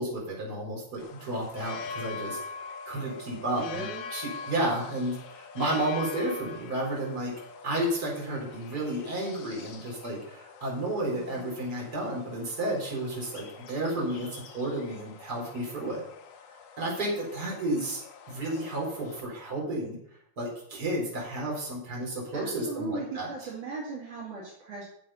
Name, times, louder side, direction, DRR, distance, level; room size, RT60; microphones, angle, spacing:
voice 1, 0.0-2.4 2.9-7.3 7.6-16.0 16.8-18.0 18.3-20.0 20.4-23.3, right 1 dB, 25° right, -4 dB, 4.3 m, -32 dB
sound 1, 1.0-19.2, left 5 dB, 65° left, 2.2 m, -44 dB
voice 2, 3.6-4.1 11.1-11.4 22.3-24.8, right 3 dB, 60° right, -5 dB, 3.6 m, -38 dB
11.0 x 7.3 x 5.6 m, 0.69 s
omnidirectional pair, 4.2 m